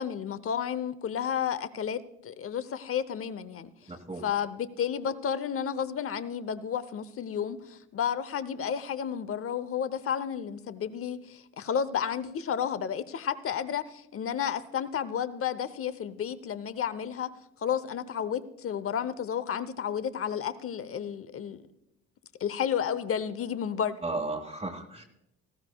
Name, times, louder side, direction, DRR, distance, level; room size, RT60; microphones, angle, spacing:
voice 1, 0.0-3.7 4.2-17.3 17.6-21.6 22.4-24.0, left 8 dB, 45° left, 14 dB, 0.8 m, -32 dB
voice 2, 3.9-4.2 24.0-25.0, right 2 dB, 20° right, -1 dB, 1.5 m, -34 dB
18.5 x 14.5 x 2.3 m, 0.85 s
cardioid pair, 90°, 30 cm